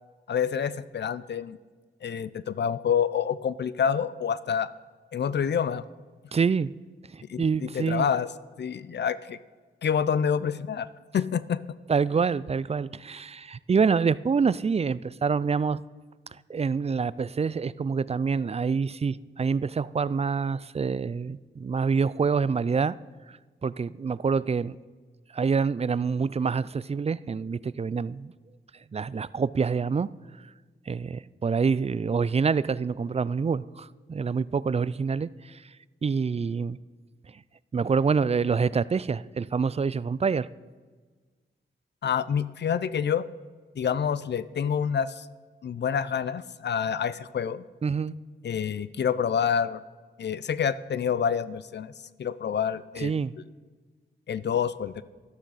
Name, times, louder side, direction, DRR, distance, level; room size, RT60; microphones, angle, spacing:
voice 1, 0.3-1.6 2.0-4.7 5.1-5.8 7.3-8.3 8.6-9.4 9.8-10.9 11.1-11.6 42.0-43.3 43.8-45.3 45.6-47.6 48.4-49.8 50.2-51.9 52.2-53.1 54.3-55.0, left 7 dB, 60° left, 16 dB, 0.5 m, -27 dB
voice 2, 6.3-6.7 7.1-8.1 11.9-15.8 16.5-22.9 23.6-24.8 25.3-28.3 28.9-30.1 30.9-35.6 36.0-36.8 37.7-40.5 47.8-48.1 53.0-53.3, right 5 dB, 30° right, 19 dB, 0.4 m, -26 dB
12.5 x 12.5 x 4.1 m, 1.4 s
cardioid pair, 45°, 20 cm